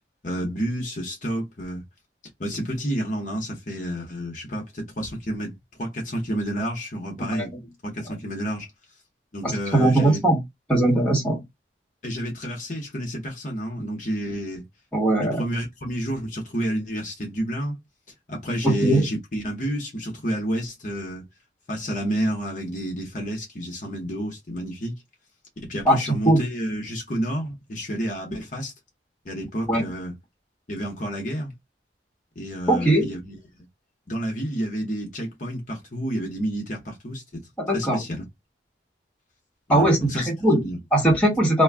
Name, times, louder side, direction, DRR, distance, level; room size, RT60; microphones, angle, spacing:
voice 1, 0.2-1.8 2.4-7.5 7.8-8.7 9.3-10.2 12.0-14.6 15.2-17.8 18.3-21.2 21.7-25.0 25.6-28.7 29.2-30.1 30.7-31.5 32.4-33.4 34.1-37.4 37.7-38.2 39.7-40.3 40.6-40.8, equal, 45° left, 0.8 m, -30 dB
voice 2, 9.4-10.4 10.7-11.4 14.9-15.4 18.6-19.1 25.9-26.0 26.2-26.4 29.7-29.8 32.7-33.1 37.6-38.0 39.7-41.6, right 1 dB, 5° left, 1.1 m, -20 dB
2.4 x 2.2 x 3.4 m
head